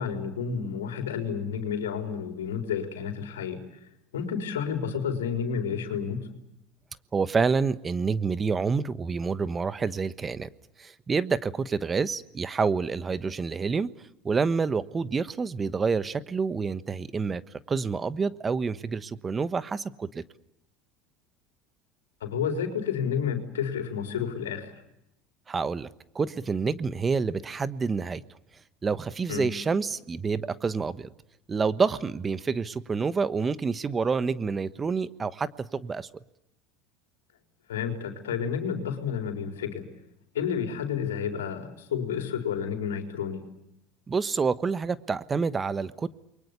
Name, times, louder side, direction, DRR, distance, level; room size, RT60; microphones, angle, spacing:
voice 1, 0.0-3.6 4.1-6.3 22.2-24.7 29.3-29.5 37.7-39.8 40.3-43.4, left 7 dB, 85° left, 4 dB, 4.1 m, -30 dB
voice 2, 7.1-10.5 10.8-13.9 14.2-17.4 17.7-20.2 25.5-25.9 26.1-28.2 28.8-31.1 31.5-36.1 44.1-46.1, right 5 dB, 25° right, 15 dB, 1.2 m, -28 dB
29.0 x 23.0 x 6.9 m, 0.83 s
hypercardioid pair, 85°, 0 cm